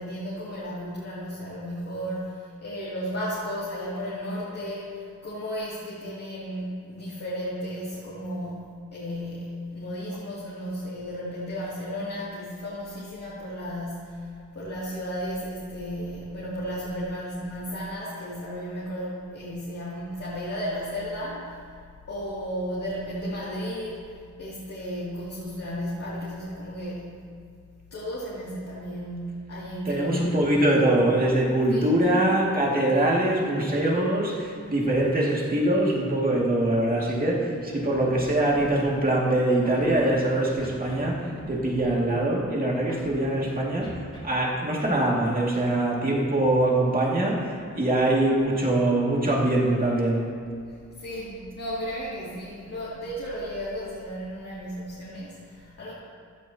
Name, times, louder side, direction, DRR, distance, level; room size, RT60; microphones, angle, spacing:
voice 1, 0.0-21.6 22.1-27.2 27.9-30.5 31.7-32.0 51.0-55.9, equal, 55° left, -9 dB, 2.7 m, -34 dB
voice 2, 29.9-43.9 44.2-50.2, right 1 dB, 30° right, -4 dB, 2.4 m, -23 dB
Scratching (performance technique), 37.7-37.8 38.0-38.3 38.5-38.9 39.6-40.2 40.6-41.0 41.3-41.5 41.8-42.2 42.9-43.5 43.8-44.2, equal, 15° left, 3.5 m, -41 dB
15.5 x 11.5 x 2.9 m, 2.2 s
wide cardioid pair, 125°, 29 cm